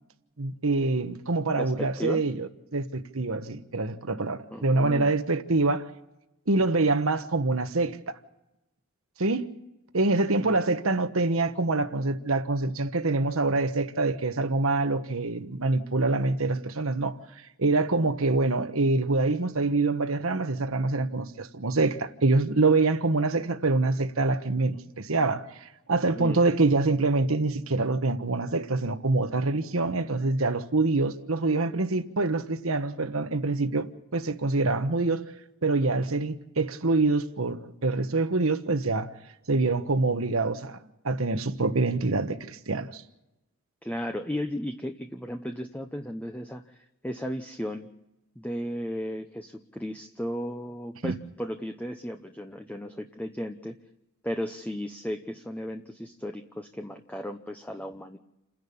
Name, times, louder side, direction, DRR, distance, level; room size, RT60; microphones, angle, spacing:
voice 1, 0.4-5.9 6.5-8.2 9.2-9.5 9.9-17.2 17.6-35.2 35.6-39.1 39.5-40.8 41.0-43.0 51.0-51.1, right 3 dB, 75° right, 1.3 m, -25 dB
voice 2, 1.6-2.3 4.5-5.1 10.4-10.6 26.2-26.4 43.8-46.8 47.0-47.9 48.4-53.8 54.2-58.2, equal, 5° left, 0.9 m, -35 dB
29.0 x 11.0 x 8.5 m
head